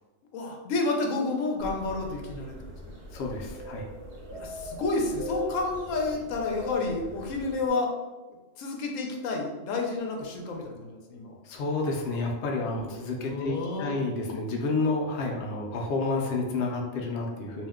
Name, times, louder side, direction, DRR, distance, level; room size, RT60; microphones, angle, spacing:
voice 1, 0.3-2.9 4.3-7.9 8.6-11.4 12.9-14.0, left 3 dB, 90° left, 1 dB, 1.0 m, -30 dB
sound 1, 1.6-7.7, left 3 dB, 60° right, 0.8 m, -39 dB
voice 2, 3.1-3.9 11.4-17.7, left 3 dB, 65° left, 0 dB, 0.7 m, -30 dB
2.6 x 2.1 x 3.5 m, 1.2 s
omnidirectional pair, 1.3 m